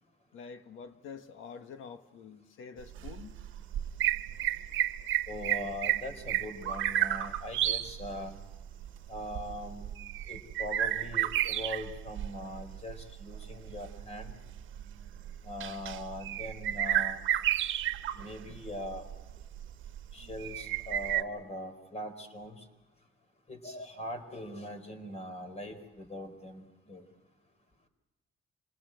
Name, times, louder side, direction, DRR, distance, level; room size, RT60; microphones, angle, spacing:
voice 1, 0.3-3.4, left 6 dB, 85° left, 1.6 m, -47 dB
sound 1, 2.8-21.2, right 12 dB, 80° right, 1.2 m, -32 dB
voice 2, 5.3-8.4 9.1-9.9 10.3-14.3 15.5-17.2 18.1-19.0 20.1-22.5 23.5-26.6 26.9-27.0, left 1 dB, 35° left, 4.6 m, -41 dB
26.5 x 19.0 x 7.9 m
cardioid pair, 90°, 20 cm